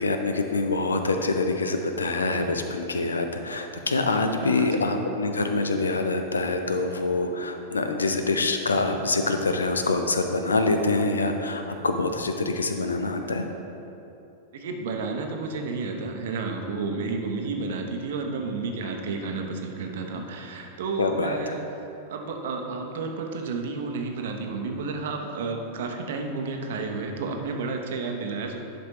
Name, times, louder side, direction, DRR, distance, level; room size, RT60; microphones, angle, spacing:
voice 1, 0.0-13.5 21.0-21.5, left 3 dB, 75° left, 6 dB, 0.5 m, -25 dB
voice 2, 4.4-4.9 14.5-21.6 22.1-28.6, right 4 dB, 55° right, 3 dB, 0.8 m, -31 dB
10.5 x 5.2 x 3.0 m, 2.9 s
figure-of-eight pair, 90°, 0 cm